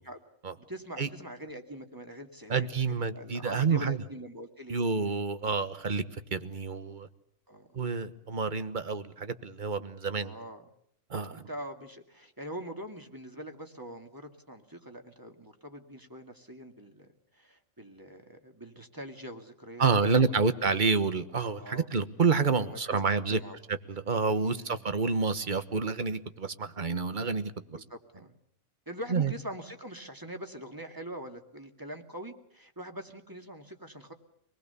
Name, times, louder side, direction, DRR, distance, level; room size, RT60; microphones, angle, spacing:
voice 1, 0.7-4.8 7.5-7.7 10.2-10.6 11.3-17.1 17.3-20.4 20.8-20.9 21.5-21.9 22.6-23.6 24.3-24.9 27.7-28.3 28.9-34.1, equal, 15° right, 4 dB, 2.1 m, -43 dB
voice 2, 2.5-4.0 4.7-6.0 6.3-7.1 7.7-10.3 11.1-11.5 19.8-23.4 23.7-27.8 29.1-29.3, right 4 dB, 40° right, 11 dB, 1.3 m, -28 dB
26.0 x 20.0 x 6.9 m, 0.71 s
omnidirectional pair, 1.4 m